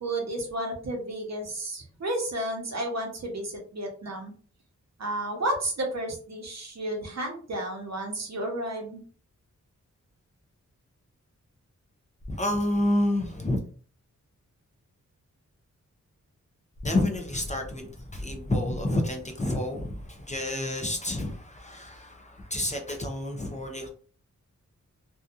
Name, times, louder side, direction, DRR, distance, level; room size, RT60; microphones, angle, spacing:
voice 1, 0.0-4.3 5.0-9.0, right 1 dB, 60° right, 1 dB, 0.9 m, -32 dB
voice 2, 12.3-13.6 16.8-23.9, left 1 dB, 25° left, 3 dB, 0.5 m, -29 dB
2.7 x 2.3 x 2.4 m, 0.43 s
wide cardioid pair, 90°, 31 cm